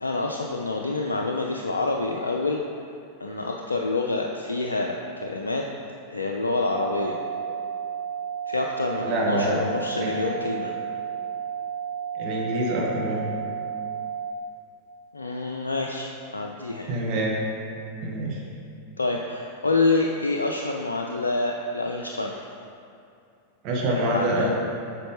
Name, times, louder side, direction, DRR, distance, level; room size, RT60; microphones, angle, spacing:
voice 1, 0.0-2.6 3.2-5.7 6.1-7.2 8.5-10.7 15.1-16.9 19.0-22.3 24.0-24.5, left 3 dB, 80° left, 1 dB, 0.3 m, -27 dB
sound 1, 6.7-14.3, right 8 dB, 5° right, 0.8 m, -32 dB
voice 2, 9.0-9.6 10.0-10.1 12.1-13.3 16.9-17.4 18.0-18.4 23.6-24.5, right 1 dB, 40° right, -3 dB, 1.1 m, -26 dB
8.3 x 5.1 x 3.2 m, 2.5 s
figure-of-eight pair, 90°, 0 cm